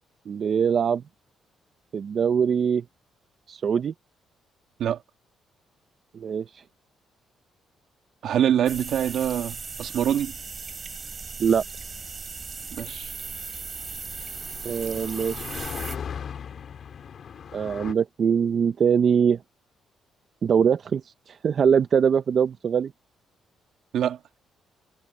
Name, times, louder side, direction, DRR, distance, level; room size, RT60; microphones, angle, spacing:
voice 1, 0.3-1.0 1.9-2.8 3.5-3.9 6.1-6.6 11.4-11.6 14.6-15.5 17.5-19.4 20.4-22.9, right 7 dB, 50° right, 0.8 m, -23 dB
voice 2, 8.2-10.3 12.7-13.1 23.9-24.2, right 10 dB, 70° right, 2.1 m, -25 dB
sound 1, 8.7-16.0, right 5 dB, 35° right, 3.4 m, -37 dB
sound 2, 9.6-17.9, left 7 dB, 55° left, 3.0 m, -40 dB
cardioid pair, 90°, 0 cm